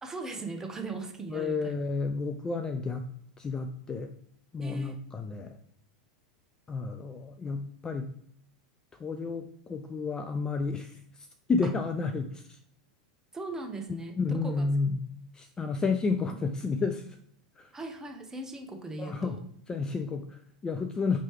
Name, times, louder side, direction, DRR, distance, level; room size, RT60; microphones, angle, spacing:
voice 1, 0.0-1.8 4.6-5.0 11.6-11.7 13.3-14.6 17.7-19.4, right 2 dB, 15° right, 4 dB, 0.7 m, -39 dB
voice 2, 1.3-3.1 3.4-4.1 4.5-5.6 6.7-8.1 9.0-12.6 14.2-15.1 15.3-17.2 17.6-17.7 19.0-19.4 19.7-21.2, left 4 dB, 20° left, 7 dB, 0.3 m, -31 dB
4.3 x 3.1 x 3.0 m, 0.65 s
hypercardioid pair, 90°, 4 cm